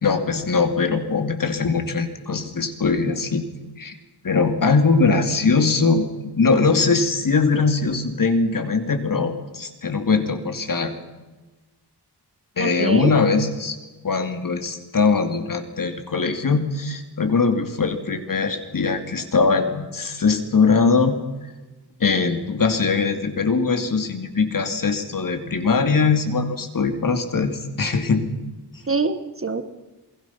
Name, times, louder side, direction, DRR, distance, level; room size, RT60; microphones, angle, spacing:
voice 1, 0.0-3.5 3.8-4.0 4.2-10.9 12.6-13.8 14.0-21.2 22.0-28.3, left 4 dB, 55° left, 7 dB, 2.7 m, -21 dB
voice 2, 12.6-13.1 28.9-29.6, right 3 dB, 30° right, 10 dB, 1.4 m, -24 dB
28.0 x 21.0 x 5.9 m, 1.1 s
wide cardioid pair, 120°, 40 cm